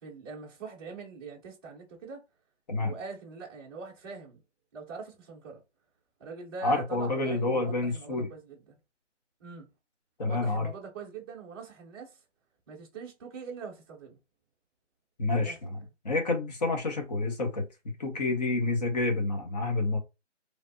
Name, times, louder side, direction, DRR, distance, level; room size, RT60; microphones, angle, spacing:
voice 1, 0.0-2.2 2.7-4.4 4.7-5.6 6.2-8.8 9.4-9.7 10.3-12.2 12.7-14.2 15.3-15.8, right 5 dB, 20° right, 0.7 m, -43 dB
voice 2, 6.6-8.3 10.2-10.7 15.2-15.8 16.0-20.0, left 2 dB, 35° left, 0.9 m, -29 dB
3.3 x 2.0 x 2.6 m
hypercardioid pair, 155°, 36 cm